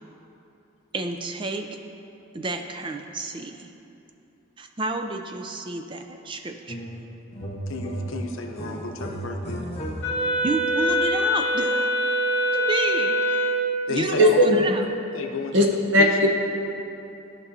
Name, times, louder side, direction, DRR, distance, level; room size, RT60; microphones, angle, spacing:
voice 1, 0.9-1.8 2.3-3.7 4.6-7.0 10.4-11.9 12.5-13.6 13.9-14.8, right 3 dB, 25° right, 5 dB, 0.3 m, -31 dB
sound 1, 6.7-7.1 7.3-10.4, right 1 dB, 30° left, 0.8 m, -34 dB
voice 2, 7.7-9.6 13.9-14.4 15.1-15.7 16.0-16.3, left 3 dB, 75° left, 3 dB, 0.7 m, -32 dB
Wind instrument woodwind instrument, 10.0-13.8, equal, 55° left, 1.7 m, -23 dB
voice 3, 14.2-14.6 15.5-15.7 15.9-16.3, equal, 65° right, 1 dB, 0.9 m, -16 dB
14.0 x 5.4 x 2.7 m, 2.8 s
head